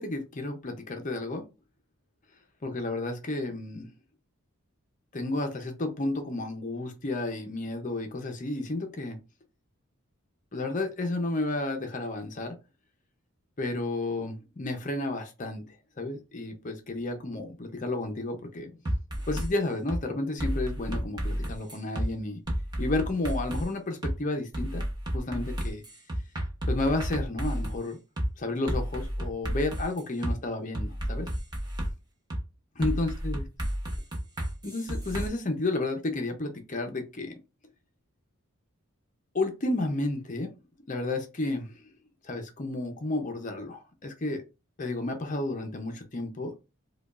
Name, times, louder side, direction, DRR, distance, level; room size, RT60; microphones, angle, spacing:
voice 1, 0.0-1.5 2.6-3.9 5.1-9.2 10.5-12.6 13.6-15.6 16.0-18.8 19.3-22.4 22.8-24.9 25.1-25.8 26.7-28.0 28.4-31.3 32.8-33.4 34.6-37.3 39.3-40.5 40.9-41.8 42.2-44.4 44.8-46.5, left 2 dB, 35° left, 4 dB, 0.5 m, -32 dB
sound 1, 18.9-19.5 19.9-20.0 20.4-22.1 22.5-23.7 24.0-24.1 24.5-27.8 28.2-28.3 28.7-30.3 30.7-31.9 32.3-32.4 32.8-35.3, equal, 20° right, 0.8 m, -31 dB
4.9 x 2.3 x 2.4 m, 0.28 s
head